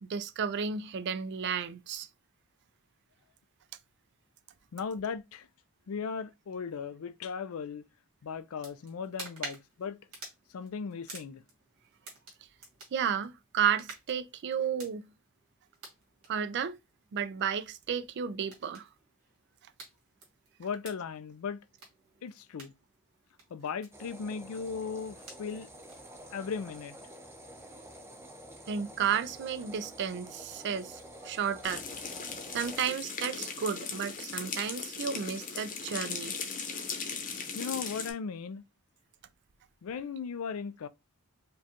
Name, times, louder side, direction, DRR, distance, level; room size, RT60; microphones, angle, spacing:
voice 1, 0.0-2.1 12.9-15.1 16.3-16.8 17.1-18.9 28.7-31.9 32.5-36.4, right 7 dB, 55° right, 0.4 m, -32 dB
voice 2, 4.7-5.5 5.9-7.8 8.2-10.0 10.5-11.4 20.6-21.6 22.2-22.7 23.5-25.7 26.3-27.0 37.5-38.6 39.8-40.9, left 6 dB, 75° left, 0.4 m, -37 dB
sound 1, 8.5-28.1, right 3 dB, 75° right, 2.0 m, -52 dB
sound 2, 23.9-32.9, right 1 dB, 10° right, 0.7 m, -49 dB
sound 3, 31.6-38.1, left 5 dB, 40° left, 0.8 m, -38 dB
5.0 x 2.3 x 2.8 m
head